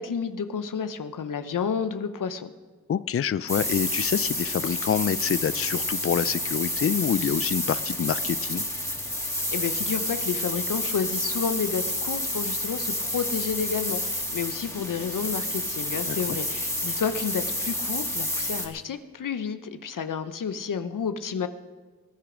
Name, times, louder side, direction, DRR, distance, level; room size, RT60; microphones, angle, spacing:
voice 1, 0.0-2.5 9.5-21.5, left 6 dB, 65° left, 10 dB, 0.9 m, -30 dB
voice 2, 2.9-8.7 16.1-16.2, left 8 dB, 40° left, 17 dB, 0.5 m, -26 dB
sound 1, 3.5-18.7, left 1 dB, 10° left, 2.8 m, -29 dB
21.5 x 10.0 x 5.1 m, 1.4 s
cardioid pair, 50°, 35 cm